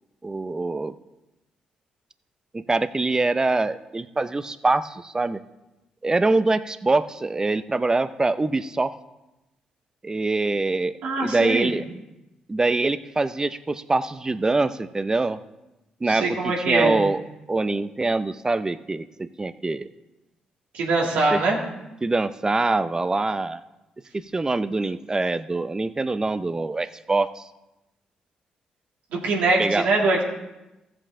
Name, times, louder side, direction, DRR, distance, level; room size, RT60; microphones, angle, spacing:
voice 1, 0.2-0.9 2.5-5.4 6.0-8.9 10.0-10.9 11.2-11.8 12.5-15.4 16.0-17.2 17.5-19.9 21.3-21.4 22.0-23.6 24.1-27.4 29.6-29.9, right 3 dB, 25° right, 13 dB, 0.6 m, -24 dB
voice 2, 11.0-11.7 16.1-17.0 20.7-21.6 29.2-30.2, right 3 dB, 85° right, -2 dB, 2.1 m, -22 dB
14.5 x 7.7 x 3.7 m, 0.97 s
supercardioid pair, 60°, 3 cm